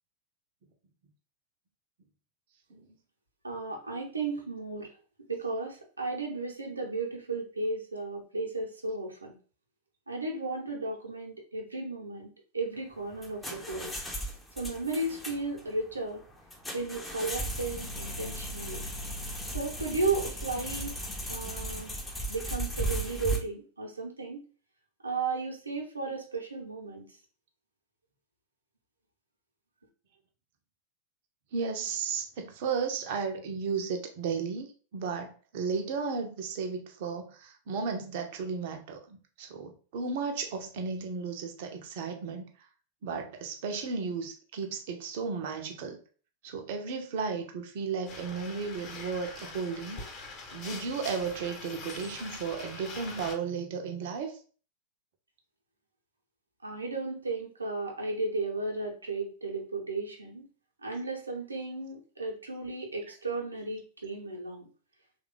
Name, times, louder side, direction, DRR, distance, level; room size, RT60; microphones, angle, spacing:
voice 1, 3.4-4.9 5.3-9.3 10.1-13.9 14.6-16.2 16.7-18.8 19.5-20.9 21.3-21.9 22.3-24.4 25.0-27.1 56.6-60.5 60.8-64.7, right 3 dB, 80° right, 0 dB, 0.9 m, -34 dB
sound 1, 12.9-23.4, right 1 dB, 5° left, 0.7 m, -36 dB
voice 2, 31.5-34.7 34.9-39.0 39.4-42.5 43.0-46.0 46.4-50.0 50.5-54.4, right 5 dB, 50° right, 4 dB, 0.6 m, -34 dB
sound 2, 48.1-53.3, left 3 dB, 35° left, 1.0 m, -43 dB
3.1 x 2.4 x 3.7 m, 0.40 s
figure-of-eight pair, 90°, 0 cm